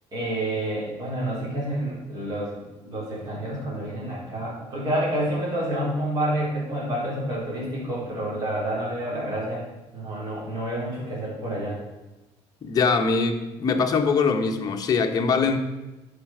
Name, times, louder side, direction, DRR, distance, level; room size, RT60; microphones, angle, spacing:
voice 1, 0.1-2.5 2.8-9.6 9.9-11.8, right 1 dB, 35° right, -8 dB, 4.1 m, -28 dB
voice 2, 12.6-15.6, left 5 dB, 35° left, 4 dB, 0.9 m, -22 dB
11.0 x 5.3 x 6.0 m, 1.1 s
cardioid pair, 150°, 11 cm